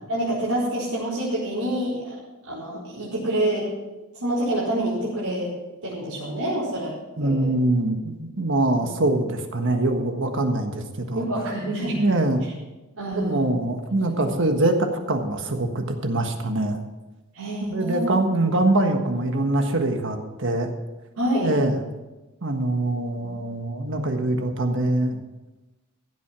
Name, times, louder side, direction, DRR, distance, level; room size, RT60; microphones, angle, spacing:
voice 1, 0.1-2.1 2.5-3.7 4.1-5.5 5.8-6.9 7.2-7.5 8.8-8.9 11.1-12.0 12.9-13.5 13.9-14.0 14.3-14.4 17.3-18.1 21.2-21.5, right 1 dB, 85° right, -10 dB, 4.6 m, -27 dB
voice 2, 7.2-11.2 12.0-12.4 13.1-16.8 17.7-20.7 21.4-21.8 22.4-25.2, right 2 dB, 60° right, 5 dB, 1.5 m, -23 dB
15.0 x 8.3 x 6.1 m, 1.1 s
head